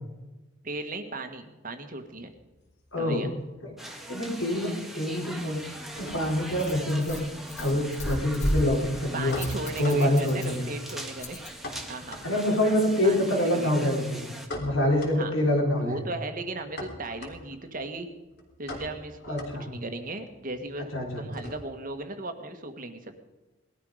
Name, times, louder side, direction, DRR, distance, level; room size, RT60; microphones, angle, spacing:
voice 1, 0.6-2.3 3.0-3.3 9.1-11.4 11.9-12.2 13.0-14.1 15.1-15.3 15.7-18.1 18.6-20.9 21.2-23.1, right 2 dB, 45° right, 6 dB, 1.7 m, -36 dB
sound 1, 2.0-3.7 3.9-4.6 4.9-21.9, left 1 dB, 55° left, 3.4 m, -44 dB
voice 2, 2.9-3.3 3.6-3.7 4.1-5.7 6.0-7.2 7.6-9.4 9.8-10.6 12.2-14.2 14.6-16.0 19.3-19.7 20.9-21.2, left 1 dB, 85° left, 0 dB, 4.3 m, -26 dB
sound 2, 3.8-14.5, right 1 dB, ahead, 1.7 m, -42 dB
Rattle, 5.5-11.5, equal, 35° left, 2.9 m, -36 dB
19.5 x 13.0 x 5.0 m, 1.1 s
head